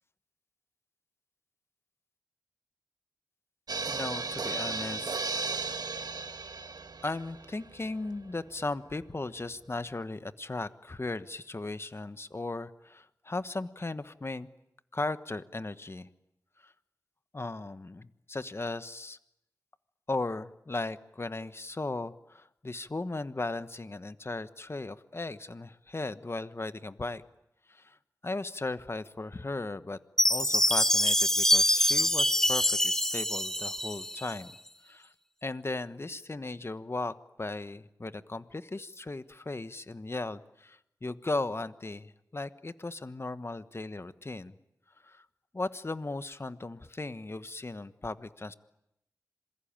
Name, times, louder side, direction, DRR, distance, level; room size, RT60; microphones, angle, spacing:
sound 1, 3.7-8.8 9.0-9.1 9.4-9.5, right 4 dB, 80° right, 1.3 m, -35 dB
voice 1, 3.9-5.2 7.0-14.5 14.9-16.1 16.6-16.7 17.3-19.2 20.1-27.2 27.7-28.0 28.2-30.0 30.3-34.6 34.8-35.1 35.4-44.5 45.0-45.2 45.5-48.5, left 2 dB, 40° left, 12 dB, 1.2 m, -37 dB
Chime, 30.2-34.3, left 1 dB, 5° left, 1.0 m, -25 dB
27.0 x 21.5 x 8.9 m, 0.81 s
wide cardioid pair, 65°, 7 cm